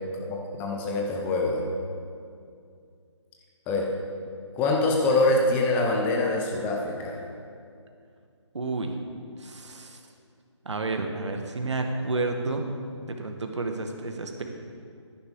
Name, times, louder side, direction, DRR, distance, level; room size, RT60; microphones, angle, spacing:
voice 1, 0.3-1.7 3.7-3.9 4.5-7.2, left 2 dB, 10° left, 0 dB, 0.9 m, -24 dB
voice 2, 8.5-8.9 9.4-10.0 10.6-12.7 13.2-14.4, right 3 dB, 70° right, 4 dB, 1.5 m, -30 dB
14.5 x 10.5 x 3.6 m, 2.4 s
figure-of-eight pair, 155°, 16 cm